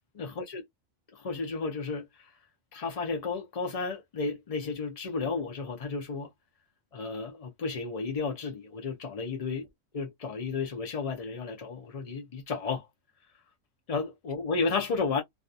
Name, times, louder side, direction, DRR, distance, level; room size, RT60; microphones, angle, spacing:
voice 1, 0.1-0.6 1.1-2.3 2.7-6.3 6.9-9.7 9.9-12.9 13.9-15.2, left 4 dB, 55° left, 0.4 m, -33 dB
2.4 x 2.3 x 2.5 m
omnidirectional pair, 1.3 m